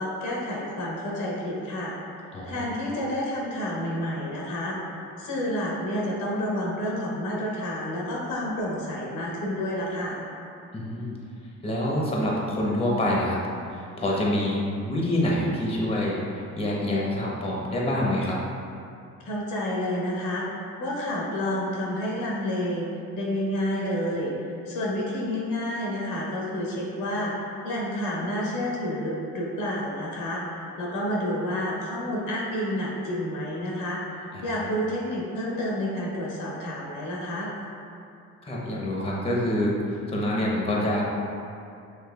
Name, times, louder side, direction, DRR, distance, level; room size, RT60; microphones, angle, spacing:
voice 1, 0.0-1.9 2.4-4.8 5.2-10.2 19.3-24.3 24.7-37.5, left 1 dB, 85° left, -3 dB, 1.0 m, -29 dB
voice 2, 2.3-2.7 10.7-11.2 11.6-13.4 13.7-16.2 16.6-18.4 34.3-34.7 38.4-41.0, left 1 dB, 20° left, -4 dB, 0.8 m, -26 dB
5.9 x 3.0 x 2.3 m, 2.5 s
cardioid pair, 90°, 30 cm